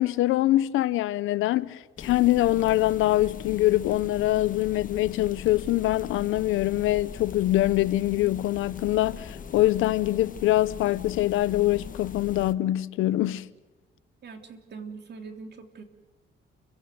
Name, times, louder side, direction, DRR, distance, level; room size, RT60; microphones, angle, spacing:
voice 1, 0.0-13.5, left 15 dB, 90° left, 0.8 m, -24 dB
sound 1, 2.0-12.5, left 6 dB, 45° left, 1.3 m, -40 dB
voice 2, 14.2-15.8, right 4 dB, 60° right, 3.4 m, -42 dB
30.0 x 16.5 x 9.4 m
cardioid pair, 90°, 20 cm